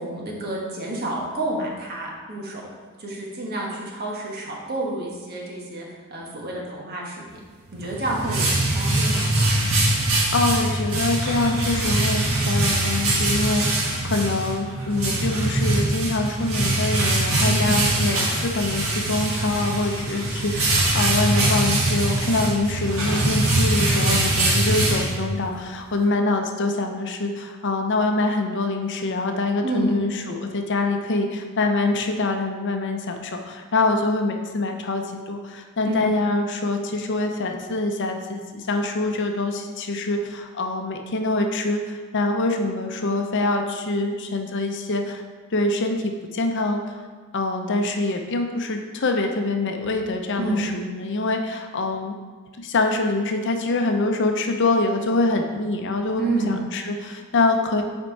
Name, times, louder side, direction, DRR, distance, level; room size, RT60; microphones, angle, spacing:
voice 1, 0.0-2.6 3.0-7.2 7.7-9.3 17.4-17.7 29.6-29.9 35.8-36.1 50.4-50.7 56.2-56.6, right 2 dB, 50° right, -3 dB, 1.4 m, -29 dB
sound 1, 7.7-25.6, right 2 dB, 75° right, 1.6 m, -22 dB
voice 2, 10.0-45.2 45.5-47.0 47.3-52.1 52.6-57.8, left 2 dB, 60° left, 4 dB, 0.7 m, -25 dB
6.6 x 4.4 x 4.6 m, 1.4 s
head